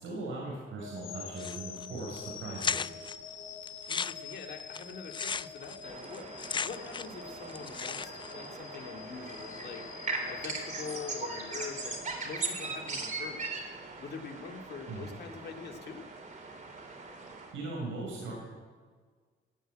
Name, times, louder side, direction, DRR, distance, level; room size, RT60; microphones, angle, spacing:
voice 1, 0.0-2.9 14.9-15.1 17.5-18.3, right 2 dB, 85° right, -3 dB, 5.4 m, -39 dB
sound 1, 0.8-12.9, left 6 dB, 85° left, 2.1 m, -46 dB
sound 2, 1.4-1.9 2.2-2.3 2.6-3.2 3.7-7.2 7.5-8.3, left 6 dB, 25° left, 0.4 m, -35 dB
voice 2, 3.9-13.5 14.0-16.0, left 5 dB, 55° left, 3 dB, 2.2 m, -44 dB
sound 3, 5.8-17.5, right 3 dB, 40° right, 3.9 m, -40 dB
17.0 x 8.6 x 9.0 m, 1.5 s
cardioid pair, 90°, 20 cm